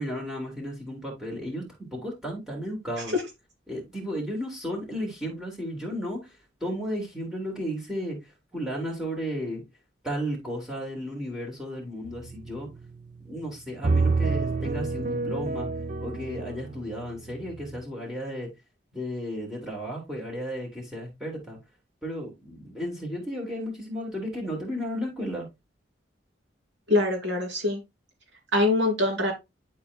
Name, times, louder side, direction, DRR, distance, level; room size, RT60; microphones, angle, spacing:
voice 1, 0.0-3.1 3.7-8.2 8.5-9.6 10.0-12.7 13.2-15.7 16.0-18.5 18.9-21.6 22.0-25.5, equal, 5° right, 3.4 m, -34 dB
sound 1, 12.1-12.9 13.8-17.8, right 3 dB, 45° right, 0.6 m, -28 dB
voice 2, 26.9-27.8 28.5-29.3, left 2 dB, 80° right, 3.0 m, -23 dB
11.5 x 4.7 x 2.3 m
head